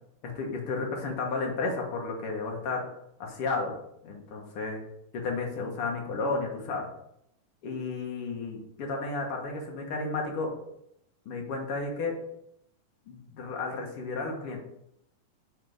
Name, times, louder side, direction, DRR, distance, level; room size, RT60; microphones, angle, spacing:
voice 1, 0.2-2.8 3.2-3.8 4.0-4.8 5.1-6.9 7.6-10.5 11.2-12.2 13.1-14.6, left 3 dB, 55° left, 0 dB, 1.8 m, -32 dB
7.2 x 3.7 x 6.3 m, 0.76 s
omnidirectional pair, 4.0 m